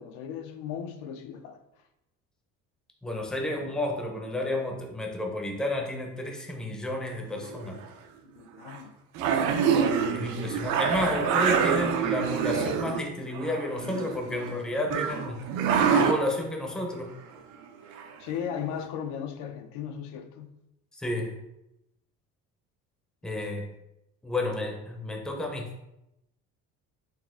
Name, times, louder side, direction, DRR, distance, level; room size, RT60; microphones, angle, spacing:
voice 1, 0.0-1.6 8.3-8.9 18.2-20.5, left 8 dB, 85° left, 7 dB, 0.5 m, -36 dB
voice 2, 3.0-7.8 10.1-15.5 15.8-17.1 21.0-21.3 23.2-23.7 24.2-25.7, left 1 dB, ahead, 1 dB, 0.5 m, -31 dB
sound 1, 7.4-7.8 8.7-8.8 9.1-13.0 13.3-14.6 14.9-16.2 18.0-18.1 18.5-18.6, right 7 dB, 80° right, 0.5 m, -26 dB
4.1 x 2.4 x 3.5 m, 0.87 s
cardioid pair, 135°, 30 cm